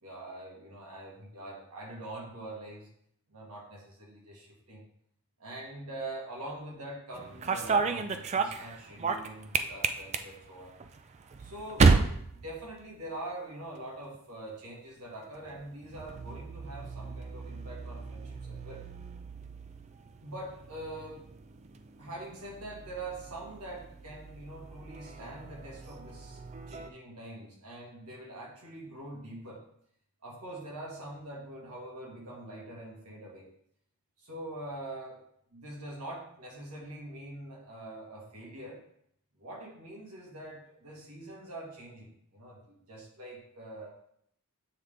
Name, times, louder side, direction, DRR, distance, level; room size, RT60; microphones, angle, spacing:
voice 1, 0.0-2.9 3.3-4.8 5.4-10.7 11.4-11.9 12.3-18.8 20.2-21.3 22.0-26.4 26.7-29.6 30.2-33.5 34.2-35.2 35.5-38.8 39.4-43.9, right 1 dB, 85° right, -3 dB, 1.9 m, -44 dB
sound 1, 7.1-13.3 13.6-14.2 15.2-26.9, right 4 dB, 30° right, 0.3 m, -33 dB
7.9 x 3.7 x 3.3 m, 0.69 s
head